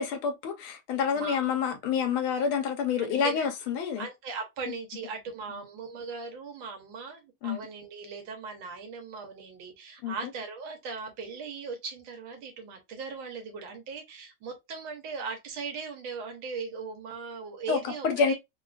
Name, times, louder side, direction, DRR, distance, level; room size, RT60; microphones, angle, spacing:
voice 1, 0.0-4.1 4.7-4.8 7.4-7.6 10.0-10.1 17.7-18.3, left 6 dB, 80° left, 1.6 m, -28 dB
voice 2, 1.1-1.5 3.0-3.5 4.0-18.3, right 5 dB, 70° right, 1.6 m, -39 dB
3.8 x 2.3 x 2.3 m
omnidirectional pair, 2.2 m